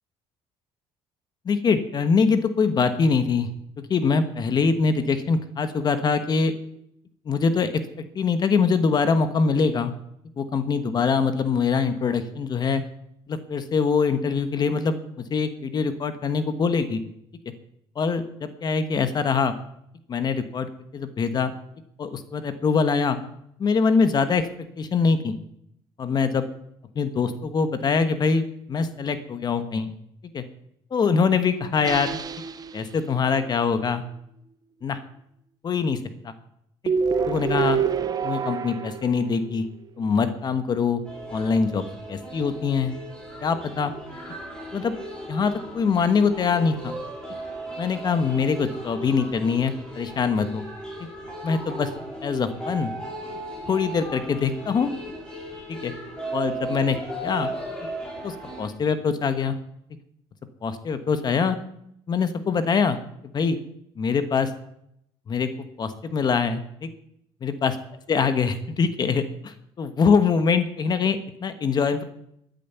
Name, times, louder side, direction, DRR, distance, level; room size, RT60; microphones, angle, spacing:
voice 1, 1.4-3.5 3.8-6.5 7.2-7.8 8.1-9.9 10.4-12.8 13.3-15.0 15.3-17.0 17.9-19.5 20.1-20.7 20.9-21.5 22.0-23.2 23.6-24.5 24.8-25.3 26.0-26.4 26.9-29.9 30.3-30.4 30.9-32.2 32.7-34.0 34.8-35.0 35.6-36.0 36.2-36.3 37.3-37.8 38.2-39.7 40.0-41.0 41.3-41.8 42.1-42.9 43.4-43.9 44.7-44.9 45.3-46.9 47.8-50.6 51.4-51.9 52.2-52.9 53.7-54.9 55.7-55.9 56.3-57.0 57.2-57.5 58.2-59.5 60.6-61.6 62.1-63.0 63.3-63.6 64.0-64.5 65.3-65.5 65.8-66.9 67.4-67.8 68.1-72.0, left 5 dB, 40° left, 10 dB, 1.3 m, -23 dB
sound 1, 31.8-33.2 36.9-39.6, right 6 dB, 35° right, 0.8 m, -27 dB
sound 2, 41.0-58.7, right 1 dB, 10° left, 5.6 m, -36 dB
13.5 x 9.4 x 7.0 m, 0.74 s
cardioid pair, 120°, 11 cm